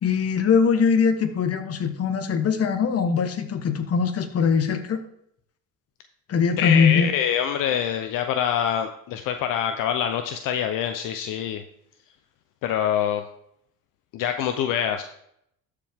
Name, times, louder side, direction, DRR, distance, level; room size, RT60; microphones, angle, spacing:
voice 1, 0.0-5.0 6.3-7.1, left 6 dB, 45° left, 8 dB, 1.3 m, -21 dB
voice 2, 6.6-11.6 12.6-13.2 14.1-15.0, left 9 dB, 70° left, 7 dB, 0.7 m, -25 dB
13.0 x 5.0 x 3.6 m, 0.72 s
cardioid pair, 100°, 34 cm